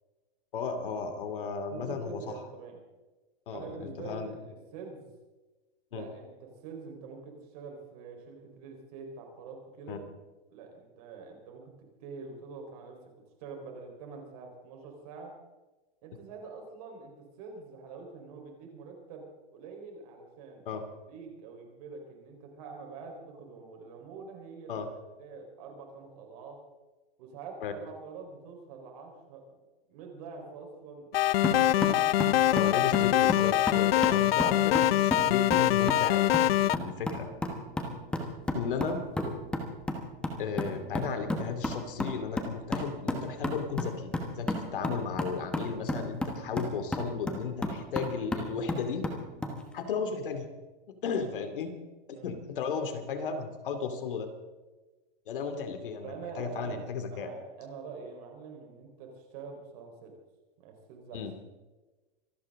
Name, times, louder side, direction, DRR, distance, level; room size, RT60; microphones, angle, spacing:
voice 1, 0.5-2.4 3.5-4.3 5.9-6.1 9.9-10.0 20.7-20.8 24.7-24.9 27.6-27.7 32.5-37.3 38.5-39.0 40.4-44.1 44.4-49.0 49.7-50.5 51.0-51.7 52.2-54.3 55.3-57.3 61.1-61.3, left 6 dB, 60° left, 8 dB, 2.6 m, -35 dB
voice 2, 1.7-2.8 3.5-5.1 5.9-10.0 10.5-11.7 12.0-13.0 13.4-15.3 16.0-20.8 21.1-26.6 27.2-29.4 29.9-32.1 37.7-38.0 52.1-52.3 56.0-60.2 60.6-61.2, right 5 dB, 40° right, 3 dB, 4.3 m, -45 dB
sound 1, 31.1-36.8, left 14 dB, 80° left, 0.5 m, -24 dB
sound 2, 31.4-49.6, left 1 dB, 5° left, 1.2 m, -34 dB
25.5 x 12.5 x 3.7 m, 1.2 s
hypercardioid pair, 170°, 29 cm